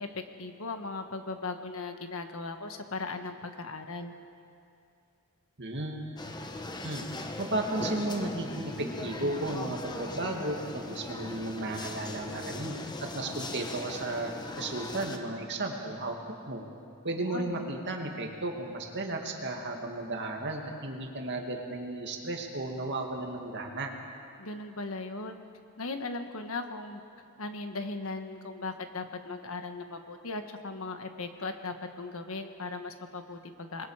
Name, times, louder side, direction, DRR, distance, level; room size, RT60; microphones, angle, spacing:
voice 1, 0.0-4.1 17.1-17.7 24.4-25.4 25.8-27.0 27.4-33.9, left 3 dB, 65° left, 6 dB, 1.5 m, -38 dB
voice 2, 5.6-6.1 6.8-7.1 7.4-16.1 16.5-16.6 17.0-23.9, right 2 dB, 50° right, 2 dB, 2.3 m, -34 dB
sound 1, 6.2-15.2, left 2 dB, 20° left, 1.2 m, -39 dB
26.5 x 21.5 x 5.0 m, 2.5 s
head